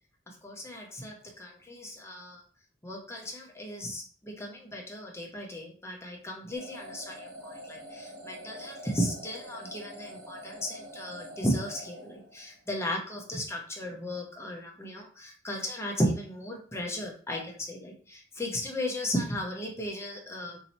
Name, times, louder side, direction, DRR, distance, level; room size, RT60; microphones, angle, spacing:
voice 1, 0.3-2.4 2.8-20.6, equal, 15° left, -1 dB, 0.8 m, -35 dB
sound 1, 6.5-12.7, equal, 50° right, 0.9 m, -45 dB
2.8 x 2.8 x 4.2 m, 0.43 s
head